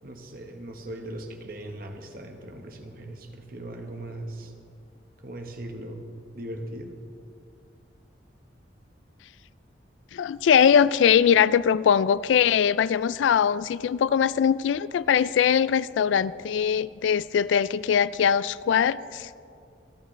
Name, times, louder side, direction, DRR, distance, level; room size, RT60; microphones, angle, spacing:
voice 1, 0.0-4.5 5.2-6.1 6.3-6.9, right 1 dB, 50° right, 3 dB, 1.2 m, -39 dB
voice 2, 10.1-19.3, left 8 dB, 85° left, 18 dB, 0.3 m, -21 dB
26.5 x 8.9 x 3.3 m, 2.4 s
head